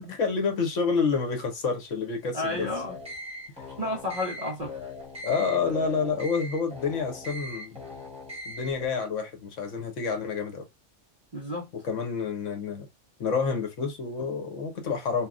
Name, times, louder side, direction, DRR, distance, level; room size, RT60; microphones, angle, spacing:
voice 1, 0.1-2.7 5.2-7.8 8.5-10.6 11.7-12.9 13.2-15.3, left 5 dB, 70° left, 1.1 m, -28 dB
voice 2, 2.3-3.0 3.8-4.7 11.3-11.7, left 1 dB, 50° right, 0.5 m, -31 dB
sound 1, 2.5-8.9, left 2 dB, 5° right, 0.8 m, -40 dB
2.8 x 2.3 x 2.4 m
omnidirectional pair, 1.4 m